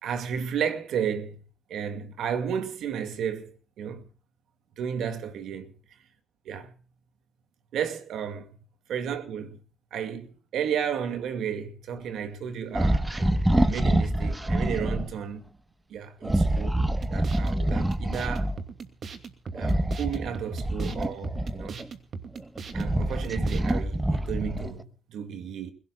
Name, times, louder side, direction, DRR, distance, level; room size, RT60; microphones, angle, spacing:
voice 1, 0.0-1.4 1.7-4.1 4.8-5.7 6.5-6.7 7.7-8.5 8.9-9.6 9.9-15.4 15.9-16.8 17.1-18.5 19.5-21.8 22.7-25.7, right 8 dB, 75° right, 2.3 m, -33 dB
sound 1, 12.7-15.1 16.2-18.6 19.5-21.9 22.4-24.8, right 1 dB, 10° right, 1.3 m, -26 dB
sound 2, 16.8-23.8, right 5 dB, 55° right, 2.6 m, -40 dB
29.0 x 17.0 x 2.4 m
cardioid pair, 90°, 0 cm